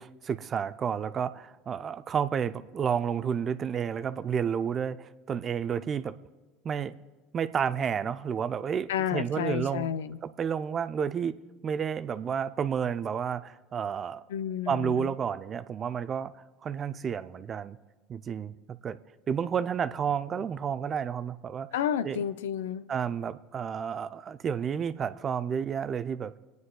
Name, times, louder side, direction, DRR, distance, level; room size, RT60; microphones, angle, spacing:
voice 1, 0.0-6.1 6.6-6.9 7.3-9.9 10.2-11.3 11.6-14.2 14.7-16.3 16.6-17.8 18.1-19.0 19.3-21.7 22.0-22.2 22.9-26.3, right 7 dB, 35° right, 12 dB, 0.5 m, -31 dB
voice 2, 8.9-10.2 14.3-15.1 21.7-22.9, left 9 dB, 85° left, 14 dB, 0.4 m, -31 dB
28.0 x 9.4 x 2.3 m, 1.2 s
hypercardioid pair, 90°, 0 cm